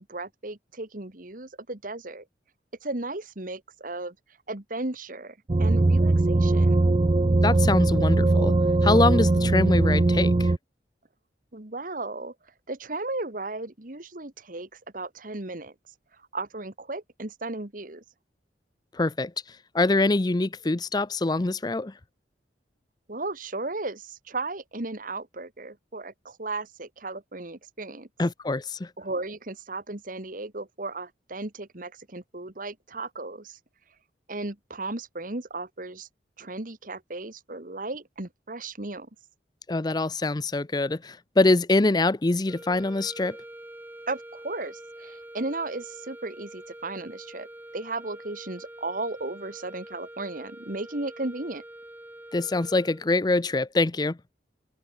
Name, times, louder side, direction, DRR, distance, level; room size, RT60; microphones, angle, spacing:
voice 1, 0.0-2.2 2.8-4.2 4.5-6.8 11.5-12.3 12.7-15.7 16.3-18.0 23.1-28.1 29.0-33.6 34.3-36.1 36.4-39.1 44.1-47.5 47.7-51.6, right 2 dB, 50° right, 1.9 m, -35 dB
sound 1, 5.5-10.6, right 2 dB, 30° right, 0.4 m, -20 dB
voice 2, 7.4-8.6 8.8-10.5 18.9-21.9 28.2-28.9 39.7-43.4 52.3-54.2, left 2 dB, 25° left, 0.5 m, -24 dB
sound 2, 42.4-53.3, right 1 dB, 10° right, 7.8 m, -45 dB
open air
head